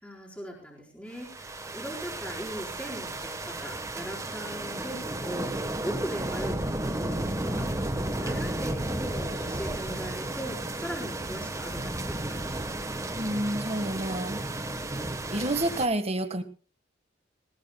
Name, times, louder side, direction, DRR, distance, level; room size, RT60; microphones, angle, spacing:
voice 1, 0.0-12.4, equal, 5° left, -3 dB, 4.7 m, -39 dB
sound 1, 1.2-15.9, right 1 dB, 15° right, 1.2 m, -33 dB
voice 2, 13.2-14.4 15.3-16.4, right 1 dB, 35° right, 8 dB, 1.5 m, -29 dB
19.5 x 19.0 x 2.3 m, 0.38 s
head